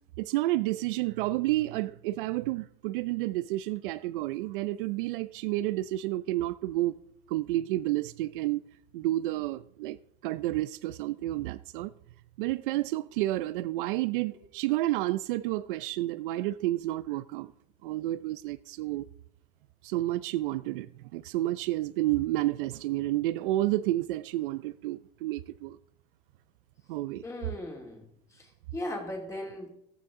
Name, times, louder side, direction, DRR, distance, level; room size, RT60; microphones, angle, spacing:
voice 1, 0.2-7.0 7.3-8.7 8.9-10.0 10.2-11.9 12.4-17.5 17.8-19.1 19.8-25.8 26.9-27.2, right 16 dB, 65° right, 0.6 m, -30 dB
voice 2, 27.2-28.1 28.3-29.7, left 1 dB, 10° left, 2.6 m, -38 dB
14.5 x 14.0 x 3.7 m
supercardioid pair, 165°, 29 cm